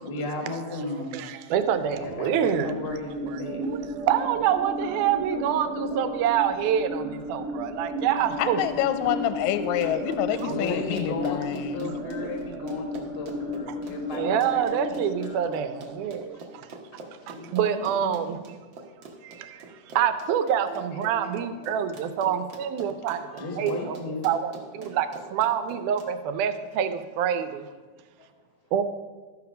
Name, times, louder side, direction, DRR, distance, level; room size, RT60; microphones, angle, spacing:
voice 1, 0.0-1.2 1.9-4.1 4.5-6.2 10.3-15.6 16.3-16.4 16.9-18.2 20.5-22.2 22.8-22.9 23.3-24.3 24.7-25.0 28.2-28.3, left 3 dB, 50° left, 2 dB, 0.7 m, -36 dB
voice 2, 1.1-2.7 3.7-8.6 10.4-10.5 14.1-16.4 17.3-18.4 19.2-19.6 20.0-23.2 23.6-24.0 24.2-27.7 28.7-28.8, right 9 dB, 80° right, 10 dB, 2.1 m, -26 dB
sound 1, 1.5-16.5, equal, 35° right, 1.6 m, -34 dB
voice 3, 8.4-12.0, left 11 dB, 80° left, 11 dB, 1.8 m, -27 dB
Run, 9.6-26.1, right 3 dB, 60° right, 1.3 m, -44 dB
13.0 x 5.8 x 5.1 m, 1.4 s
omnidirectional pair, 3.6 m